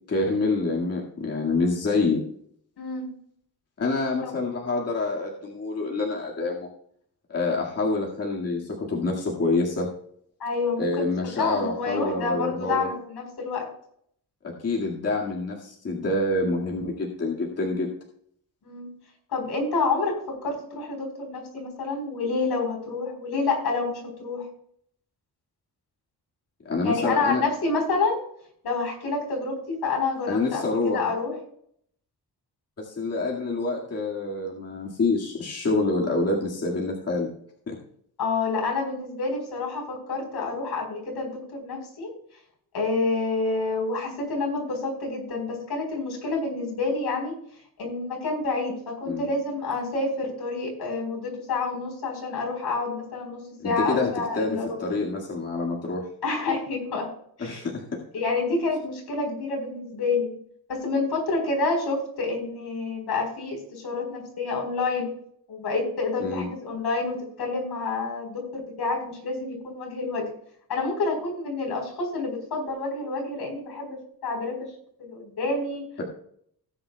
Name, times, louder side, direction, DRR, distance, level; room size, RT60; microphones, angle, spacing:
voice 1, 0.1-2.2 3.8-6.7 7.3-9.9 10.8-12.9 14.4-17.9 26.6-27.4 30.3-31.1 32.8-37.3 37.7-37.8 49.1-49.3 53.6-56.0 57.4-57.8 66.2-66.5 76.0-76.1, left 3 dB, 40° left, -3 dB, 2.0 m, -27 dB
voice 2, 2.8-3.1 4.2-4.3 10.4-11.1 11.4-13.7 18.6-18.9 19.3-24.5 26.8-28.2 28.6-31.3 38.2-42.1 42.7-47.3 47.8-54.8 56.2-57.1 57.4-57.7 58.1-60.3 60.7-65.1 65.5-70.3 70.7-74.6 75.0-75.8, left 3 dB, 85° left, 1 dB, 4.3 m, -28 dB
17.5 x 9.3 x 2.3 m, 0.66 s
wide cardioid pair, 175°, 38 cm